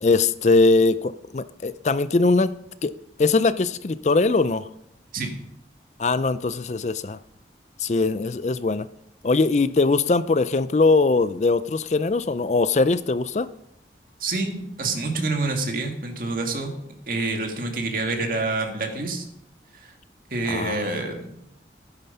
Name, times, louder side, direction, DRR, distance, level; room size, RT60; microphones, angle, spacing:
voice 1, 0.0-2.5 2.8-2.9 3.2-4.7 6.0-7.2 7.8-8.9 9.2-13.5 20.5-21.0, left 3 dB, 40° left, 14 dB, 0.4 m, -21 dB
voice 2, 14.2-16.7 17.1-19.2 19.7-19.9 20.3-21.3, right 3 dB, 50° right, 3 dB, 2.1 m, -27 dB
13.0 x 9.9 x 5.5 m, 0.77 s
head